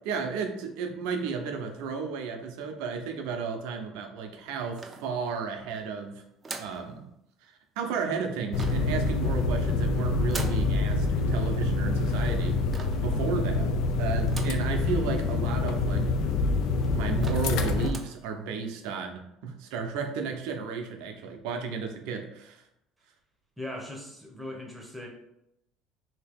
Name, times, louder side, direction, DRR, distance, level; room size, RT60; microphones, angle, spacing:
voice 1, 0.0-6.2 6.6-7.0 7.4-12.6 13.0-13.7 14.0-16.1 16.9-22.6, right 5 dB, 80° right, 3 dB, 0.6 m, -33 dB
sound 1, 4.8-5.5 6.4-6.9 8.5-9.0 10.3-10.7 12.7-13.1 14.3-14.7 15.2-15.3 15.5-15.6 16.3-16.4 16.8-16.9 17.2-17.6 17.8-18.2, right 3 dB, 20° right, 0.4 m, -40 dB
sound 2, 8.5-17.9, left 3 dB, 70° left, 0.3 m, -26 dB
voice 2, 23.6-25.1, left 1 dB, 5° right, 0 dB, 0.8 m, -39 dB
2.8 x 2.8 x 3.5 m, 0.81 s
supercardioid pair, 105°, 0 cm